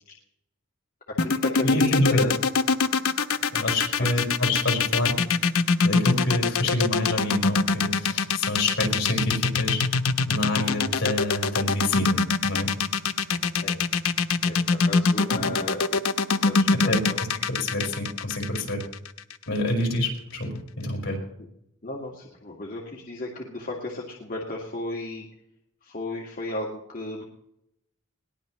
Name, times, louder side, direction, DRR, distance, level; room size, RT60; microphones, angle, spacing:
voice 1, 1.1-2.4 4.0-4.1 13.6-13.8 14.4-16.0 16.3-17.2 21.8-25.3 25.8-27.2, left 2 dB, 40° left, -2 dB, 2.0 m, -34 dB
sound 1, 1.2-19.3, left 5 dB, 85° left, 0.9 m, -23 dB
voice 2, 1.6-2.3 3.5-5.1 5.8-9.8 10.3-12.7 15.3-15.5 16.9-17.0 17.5-18.8 19.5-21.2, left 1 dB, 60° left, 0 dB, 5.2 m, -27 dB
21.0 x 18.5 x 3.2 m, 0.80 s
head